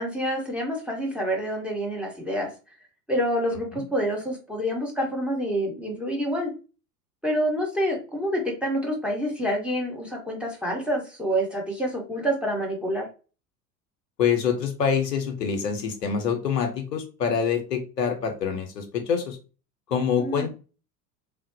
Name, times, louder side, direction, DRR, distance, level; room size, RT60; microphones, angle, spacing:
voice 1, 0.0-2.5 3.1-6.5 7.2-13.1 20.2-20.5, equal, ahead, 0 dB, 0.8 m, -27 dB
voice 2, 14.2-19.4 19.9-20.5, left 7 dB, 80° left, 4 dB, 0.7 m, -26 dB
3.1 x 2.0 x 2.6 m, 0.34 s
figure-of-eight pair, 75°, 48 cm